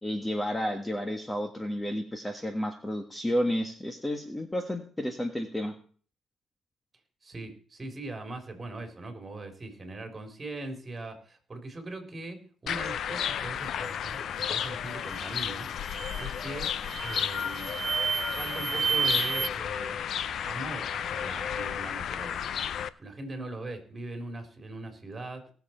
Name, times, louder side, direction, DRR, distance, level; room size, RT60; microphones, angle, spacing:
voice 1, 0.0-5.7, equal, 10° left, 6 dB, 1.4 m, -31 dB
voice 2, 7.2-15.7 16.2-16.7 17.0-17.8 18.3-20.0 20.4-22.6 23.0-25.5, right 2 dB, 25° right, 5 dB, 3.6 m, -40 dB
sound 1, 12.7-22.9, left 8 dB, 65° left, 0.6 m, -33 dB
sound 2, 15.1-15.4 15.8-16.3 16.8-19.5, right 7 dB, 45° right, 0.5 m, -31 dB
18.5 x 6.9 x 4.4 m, 0.43 s
cardioid pair, 90°, 0 cm